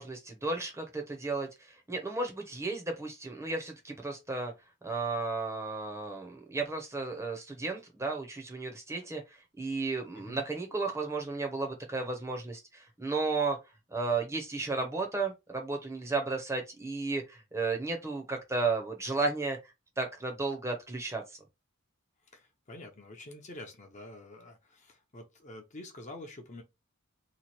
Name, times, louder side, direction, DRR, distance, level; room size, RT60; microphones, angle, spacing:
voice 1, 0.0-4.5 4.8-13.6 13.9-19.7 20.0-21.4, right 3 dB, 15° right, 0.7 m, -34 dB
voice 2, 10.1-10.5 22.3-26.6, left 1 dB, 35° left, 0.7 m, -47 dB
3.0 x 2.3 x 4.2 m
head